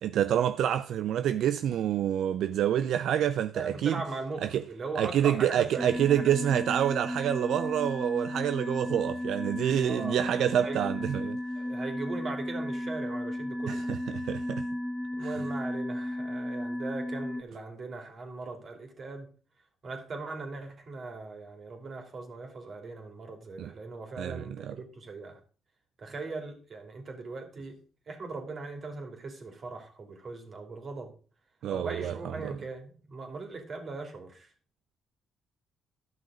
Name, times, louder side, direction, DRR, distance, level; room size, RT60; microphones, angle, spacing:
voice 1, 0.0-4.0 4.4-4.6 5.0-11.4 13.7-14.7 15.2-15.3 23.6-23.7 24.2-24.8 31.6-32.5, right 10 dB, 75° right, 0.4 m, -27 dB
voice 2, 3.5-6.3 9.8-10.8 11.6-13.9 15.2-19.3 19.8-25.4 26.0-27.7 28.1-31.1 31.7-34.5, right 3 dB, 45° right, 2.8 m, -39 dB
sound 1, 5.8-17.4, left 1 dB, ahead, 1.3 m, -34 dB
12.0 x 6.1 x 4.9 m
cardioid pair, 90°, 0 cm